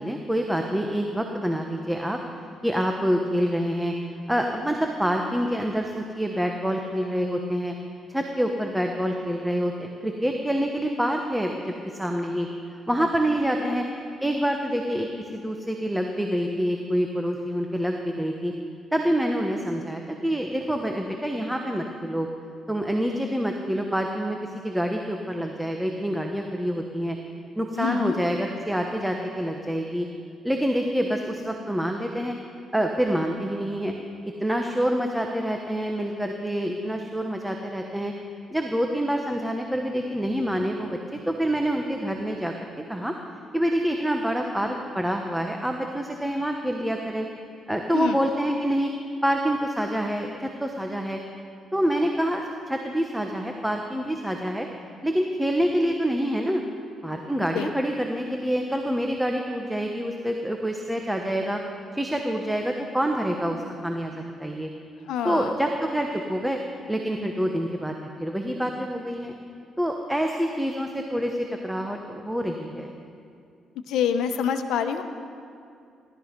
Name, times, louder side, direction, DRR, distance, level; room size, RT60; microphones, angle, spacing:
voice 1, 0.0-2.2 2.6-3.9 4.3-7.7 8.1-11.6 11.9-13.8 14.2-15.1 15.3-18.5 18.9-22.3 22.7-24.4 24.6-27.2 27.6-30.1 30.4-32.3 32.7-33.9 34.4-38.1 38.5-42.5 42.9-43.1 43.5-47.3 47.7-48.9 49.2-50.3 50.6-51.2 51.7-54.7 55.0-56.6 57.0-61.6 61.9-64.7 65.2-66.6 66.9-69.3 69.8-72.9, equal, 5° right, 3 dB, 1.1 m, -26 dB
voice 2, 27.8-28.2 47.9-48.2 57.5-57.7 65.1-65.5 73.9-75.0, left 8 dB, 85° left, 8 dB, 0.9 m, -26 dB
17.5 x 12.5 x 5.3 m, 2.5 s
cardioid pair, 90°, 0 cm